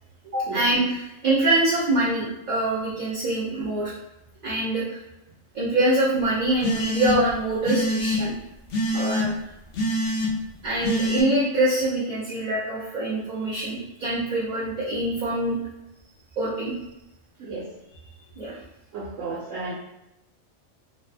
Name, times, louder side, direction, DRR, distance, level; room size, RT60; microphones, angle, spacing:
voice 1, 0.3-3.9 4.4-5.0 5.5-8.3 8.9-9.3 10.6-15.6 16.4-16.7 18.4-18.6, right 1 dB, 55° right, -7 dB, 0.5 m, -24 dB
sound 1, 6.6-7.3 7.6-8.2 8.7-9.2 9.7-10.3 10.8-11.2, equal, 60° left, 0.7 m, -25 dB
voice 2, 18.9-19.7, right 4 dB, 85° right, -6 dB, 0.9 m, -33 dB
2.6 x 2.1 x 2.4 m, 0.90 s
omnidirectional pair, 1.3 m